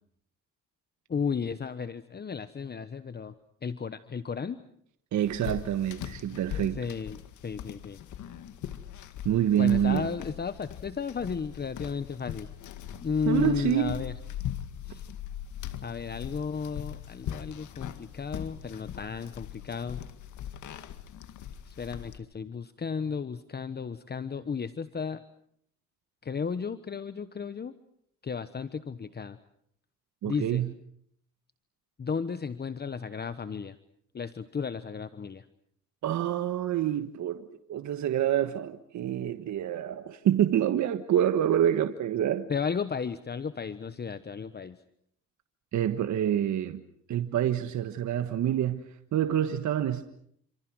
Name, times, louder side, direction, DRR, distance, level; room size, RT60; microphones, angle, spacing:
voice 1, 1.1-3.3 3.6-4.6 6.8-8.0 9.6-12.5 13.0-14.1 14.9-15.0 15.8-20.0 21.7-25.2 26.2-27.8 28.2-29.4 30.2-30.6 32.0-33.8 34.1-35.5 42.5-44.8, left 6 dB, 35° left, 1.2 m, -34 dB
voice 2, 5.1-6.8 9.2-10.1 13.2-14.1 30.2-30.7 36.0-42.5 45.7-46.8 47.1-50.0, right 10 dB, 70° right, 1.5 m, -27 dB
sound 1, 5.2-22.2, left 10 dB, 75° left, 2.1 m, -40 dB
28.0 x 27.0 x 6.3 m
cardioid pair, 90°, 30 cm